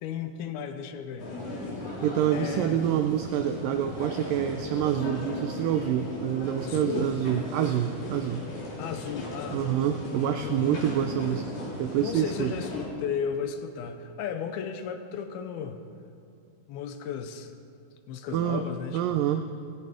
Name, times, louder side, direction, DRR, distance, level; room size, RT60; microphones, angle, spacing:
voice 1, 0.0-1.3 2.3-2.8 6.6-7.1 8.8-9.6 10.0-10.9 12.0-15.8 16.7-17.5 18.1-19.2, left 7 dB, 80° left, 7 dB, 2.6 m, -35 dB
sound 1, 1.2-12.9, left 2 dB, 60° left, 5.2 m, -37 dB
voice 2, 2.0-8.4 9.5-11.5 11.8-12.5 18.3-18.7 18.9-19.5, right 10 dB, 90° right, 8 dB, 1.9 m, -27 dB
17.0 x 14.5 x 5.1 m, 2.5 s
omnidirectional pair, 4.6 m